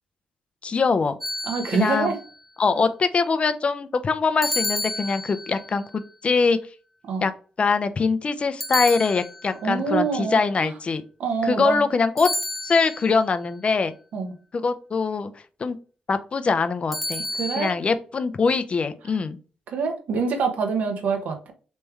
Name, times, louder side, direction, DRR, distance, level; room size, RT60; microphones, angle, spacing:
voice 1, 0.6-1.2 1.8-2.1 2.6-6.6 7.2-7.3 7.6-11.0 11.4-12.3 12.6-13.9 14.5-15.3 15.6-15.8 16.1-17.2 17.6-19.4, left 4 dB, 45° left, 11 dB, 0.5 m, -23 dB
sound 1, 1.2-2.1 4.4-5.7 8.6-9.7 12.2-13.1 16.9-17.7, left 1 dB, 5° right, 1.1 m, -30 dB
voice 2, 1.4-2.2 7.1-7.3 9.6-10.7 11.2-11.8 14.1-14.3 17.4-17.7 19.7-21.5, right 5 dB, 70° right, 5 dB, 1.0 m, -25 dB
3.4 x 3.2 x 3.2 m, 0.37 s
supercardioid pair, 50°, 3 cm